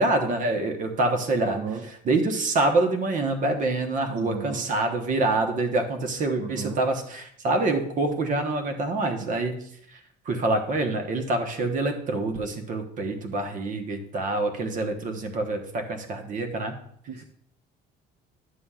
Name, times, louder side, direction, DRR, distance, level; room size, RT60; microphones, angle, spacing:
voice 1, 0.0-1.6 1.9-9.5 9.9-10.0 10.2-16.7, right 2 dB, 45° right, 5 dB, 1.1 m, -26 dB
voice 2, 1.5-1.8 4.1-4.6 6.4-6.8 17.1-17.2, right 6 dB, 65° right, 4 dB, 0.8 m, -34 dB
11.5 x 7.1 x 2.4 m, 0.68 s
cardioid pair, 140°, 19 cm